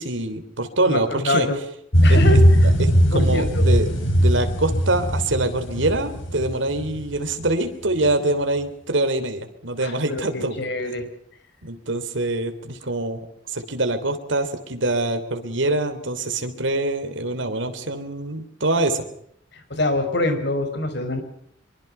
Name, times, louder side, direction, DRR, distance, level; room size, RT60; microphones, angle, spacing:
voice 1, 0.0-1.5 2.1-2.2 2.8-10.6 11.6-13.2 13.5-19.0, right 2 dB, 80° right, 7 dB, 3.2 m, -24 dB
voice 2, 0.9-1.6 2.0-2.4 3.1-3.7 9.8-11.1 19.7-21.2, left 2 dB, 65° left, 8 dB, 5.3 m, -25 dB
sound 1, 1.9-7.5 8.0-8.1, equal, 85° left, 6.6 m, -18 dB
24.5 x 24.0 x 5.6 m, 0.69 s
head